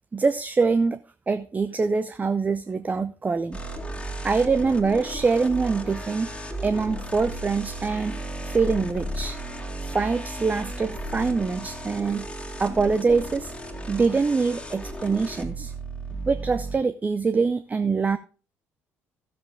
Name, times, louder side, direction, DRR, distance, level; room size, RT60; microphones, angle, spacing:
voice 1, 0.1-1.0 1.3-3.6 4.2-6.3 6.6-9.4 9.8-12.3 12.6-13.5 13.9-15.7 16.3-18.2, right 4 dB, 20° right, 0.5 m, -24 dB
sound 1, 3.5-16.8, right 1 dB, 15° left, 2.0 m, -35 dB
14.0 x 7.6 x 3.6 m
figure-of-eight pair, 55°, 7 cm